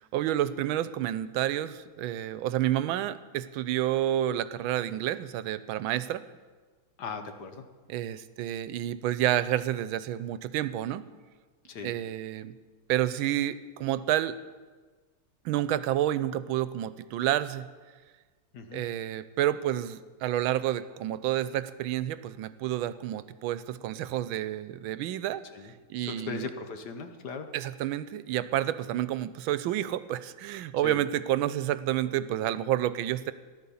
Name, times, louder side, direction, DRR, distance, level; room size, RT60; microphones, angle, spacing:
voice 1, 0.1-6.2 7.9-11.1 11.8-12.5 12.9-14.4 15.4-17.7 18.7-25.4 25.9-26.5 27.5-33.3, right 12 dB, 90° right, 14 dB, 1.4 m, -29 dB
voice 2, 7.0-7.7 11.6-11.9 18.5-18.8 25.5-27.5 30.8-31.0, left 5 dB, 60° left, 7 dB, 1.5 m, -39 dB
14.0 x 11.0 x 7.1 m, 1.4 s
omnidirectional pair, 2.2 m